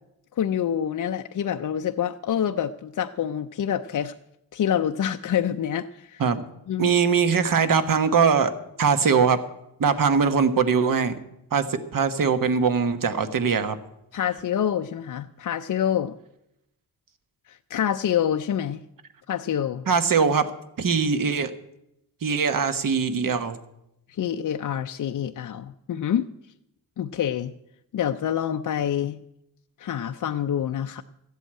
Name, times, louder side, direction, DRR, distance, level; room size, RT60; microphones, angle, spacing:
voice 1, 0.4-4.1 4.5-6.2 6.7-6.9 14.1-16.1 17.5-18.8 19.3-19.8 24.1-26.3 27.0-27.5 27.9-29.2 29.8-31.0, left 9 dB, 55° left, 6 dB, 0.5 m, -26 dB
voice 2, 6.8-8.5 8.8-9.4 9.8-11.2 11.5-13.8 19.9-20.5 20.8-21.5 22.2-23.6, right 6 dB, 60° right, 10 dB, 1.2 m, -21 dB
14.0 x 8.2 x 8.6 m, 0.84 s
cardioid pair, 95°, 38 cm